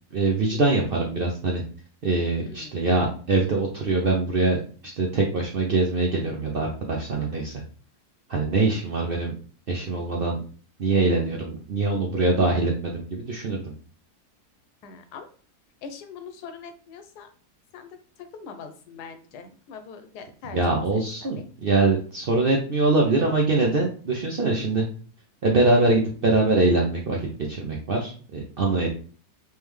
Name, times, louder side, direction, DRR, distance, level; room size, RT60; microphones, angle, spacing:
voice 1, 0.1-1.6 2.0-4.6 4.8-7.5 8.3-9.3 9.7-10.4 10.8-13.7 20.5-24.9 25.4-27.2 27.5-28.9, right 3 dB, 70° right, 0 dB, 0.5 m, -23 dB
voice 2, 2.4-2.8 14.8-15.3 15.8-17.3 17.7-18.0 18.3-20.6 21.0-21.4, left 5 dB, 90° left, 8 dB, 1.2 m, -42 dB
3.5 x 3.2 x 3.1 m, 0.42 s
omnidirectional pair, 1.7 m